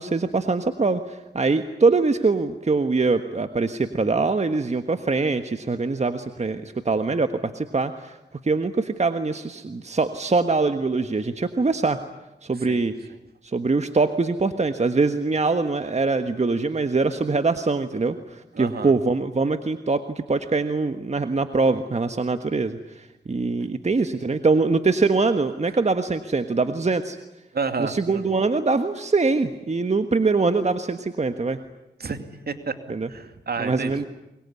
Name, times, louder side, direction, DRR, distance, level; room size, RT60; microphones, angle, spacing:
voice 1, 0.0-8.2 8.4-12.0 12.4-12.9 13.4-27.2 27.8-31.6 32.9-33.1 33.6-34.0, right 3 dB, 40° right, 8 dB, 1.5 m, -23 dB
voice 2, 18.5-18.9 27.5-28.2 32.0-32.8 33.1-34.0, right 4 dB, 60° right, 8 dB, 2.6 m, -30 dB
24.0 x 22.0 x 9.8 m, 0.95 s
cardioid pair, 55°, 18 cm